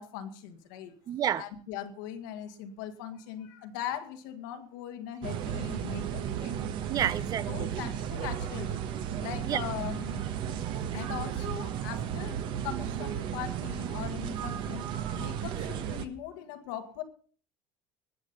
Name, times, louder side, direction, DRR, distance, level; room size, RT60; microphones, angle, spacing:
voice 1, 0.0-0.9 1.4-6.6 7.5-8.8 9.2-10.4 10.9-14.9 15.2-17.0, left 10 dB, 85° left, 6 dB, 2.1 m, -40 dB
voice 2, 1.1-1.5 6.9-7.7 9.5-9.6, right 10 dB, 40° right, 17 dB, 0.8 m, -30 dB
sound 1, 5.2-16.1, right 9 dB, 55° right, 1.5 m, -34 dB
20.5 x 7.6 x 5.4 m, 0.42 s
supercardioid pair, 130°, 10 cm